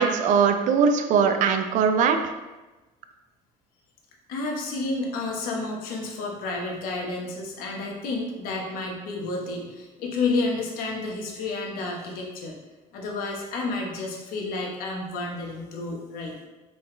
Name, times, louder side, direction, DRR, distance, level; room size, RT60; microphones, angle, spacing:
voice 1, 0.0-2.3, right 6 dB, 60° right, 7 dB, 0.5 m, -21 dB
voice 2, 4.3-12.6 12.9-16.4, left 3 dB, 80° left, 0 dB, 1.1 m, -30 dB
4.2 x 3.9 x 3.2 m, 1.1 s
cardioid pair, 135°, 15 cm